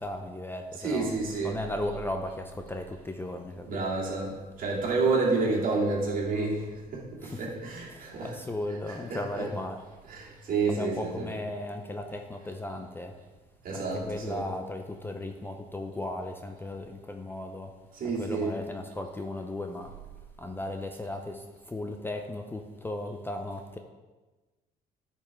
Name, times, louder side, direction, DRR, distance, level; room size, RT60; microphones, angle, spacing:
voice 1, 0.0-1.1 1.4-3.8 7.2-7.5 7.9-9.8 10.7-13.2 13.7-17.7 18.0-19.9 20.4-23.8, left 1 dB, 15° left, 5 dB, 0.5 m, -36 dB
voice 2, 0.8-1.6 3.6-8.4 8.9-9.5 10.1-11.4 13.6-14.5 17.9-18.6, right 3 dB, 55° right, -3 dB, 2.4 m, -30 dB
10.0 x 5.5 x 3.6 m, 1.2 s
cardioid pair, 110°, 17 cm